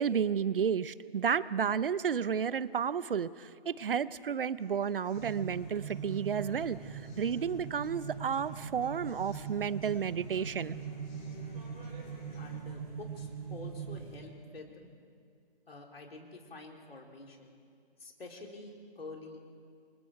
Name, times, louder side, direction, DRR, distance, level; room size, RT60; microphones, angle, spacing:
voice 1, 0.0-10.8, right 7 dB, 65° right, 17 dB, 0.8 m, -32 dB
sound 1, 4.6-12.6, left 3 dB, 50° left, 5.5 m, -55 dB
sound 2, 5.1-14.2, right 6 dB, 40° right, 5.5 m, -42 dB
voice 2, 12.3-14.9 15.7-17.6 18.0-19.4, left 2 dB, 75° left, 1 dB, 4.0 m, -48 dB
28.5 x 25.5 x 4.7 m, 2.3 s
figure-of-eight pair, 150°, 30 cm